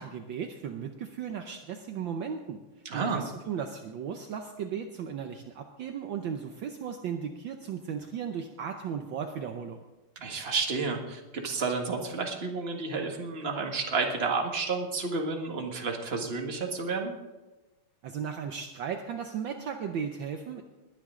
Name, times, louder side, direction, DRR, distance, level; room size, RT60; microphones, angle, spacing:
voice 1, 0.0-2.6 2.9-9.8 18.0-20.6, right 7 dB, 65° right, 5 dB, 1.4 m, -36 dB
voice 2, 2.9-3.3 10.2-17.1, right 4 dB, 30° right, 2 dB, 1.7 m, -31 dB
21.0 x 9.7 x 3.8 m, 1.1 s
omnidirectional pair, 2.4 m